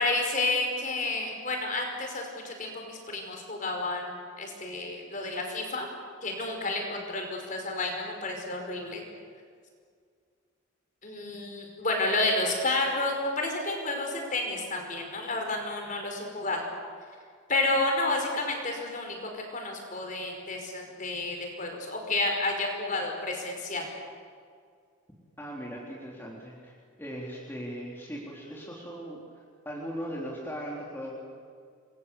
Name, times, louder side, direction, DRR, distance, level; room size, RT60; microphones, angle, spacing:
voice 1, 0.0-4.1 4.4-5.9 6.2-9.0 11.0-16.6 17.5-23.9, left 2 dB, 40° left, 2 dB, 5.4 m, -30 dB
voice 2, 25.4-26.7 27.0-29.2 29.7-31.2, equal, 10° left, -3 dB, 3.5 m, -38 dB
29.0 x 22.5 x 8.3 m, 2.1 s
head